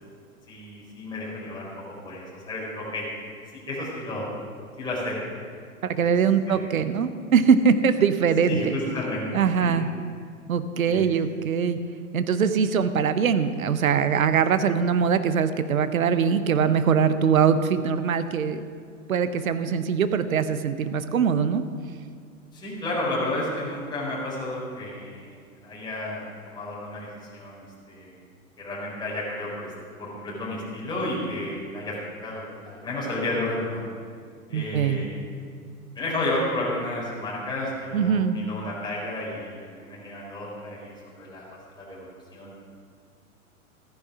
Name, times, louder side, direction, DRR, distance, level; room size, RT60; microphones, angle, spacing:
voice 1, 0.5-1.7 2.0-3.1 3.7-4.3 4.8-5.2 6.0-6.1 6.5-6.8 8.5-9.7 10.9-11.1 22.5-28.2 28.6-29.7 30.0-32.0 32.2-33.8 34.5-35.2 35.9-41.5 41.8-42.5, left 1 dB, 10° left, -6 dB, 4.1 m, -32 dB
voice 2, 5.8-8.8 9.3-9.9 10.5-11.8 12.1-18.6 19.1-21.6 34.5-35.0 37.9-38.4, right 6 dB, 70° right, 11 dB, 0.9 m, -22 dB
14.5 x 9.9 x 6.1 m, 2.2 s
figure-of-eight pair, 105°, 43 cm